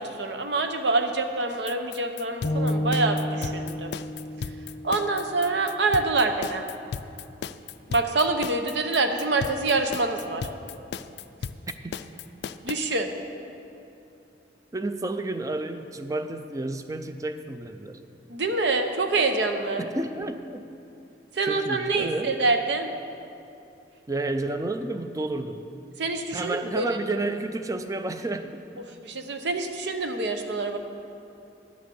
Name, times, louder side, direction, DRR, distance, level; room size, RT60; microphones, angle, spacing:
voice 1, 0.0-3.9 4.8-6.6 7.9-10.5 12.6-13.1 18.3-19.8 21.3-22.9 26.0-26.9 29.0-30.8, right 3 dB, 75° right, 6 dB, 0.8 m, -26 dB
sound 1, 1.5-12.7, left 6 dB, 65° left, 0.3 m, -36 dB
sound 2, 2.4-6.6, left 1 dB, 40° left, 0.7 m, -31 dB
voice 2, 14.7-18.0 19.8-20.7 21.4-22.3 24.1-25.6 26.3-28.6, right 2 dB, 20° right, 8 dB, 0.4 m, -31 dB
10.5 x 6.3 x 6.9 m, 2.7 s
head